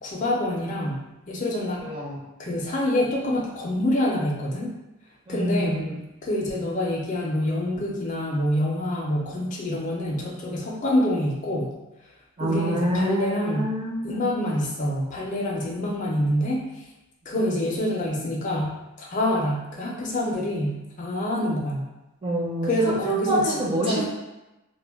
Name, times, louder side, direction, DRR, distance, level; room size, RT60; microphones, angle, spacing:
voice 1, 0.0-1.9 2.4-4.7 5.3-5.8 6.2-11.7 12.4-13.7 14.0-16.6 17.3-21.8 22.6-24.1, left 1 dB, 35° left, -2 dB, 0.4 m, -26 dB
voice 2, 1.8-2.2 5.3-5.9 12.4-14.3 22.2-24.0, right 1 dB, 25° right, -4 dB, 0.5 m, -26 dB
2.2 x 2.1 x 3.3 m, 0.99 s
head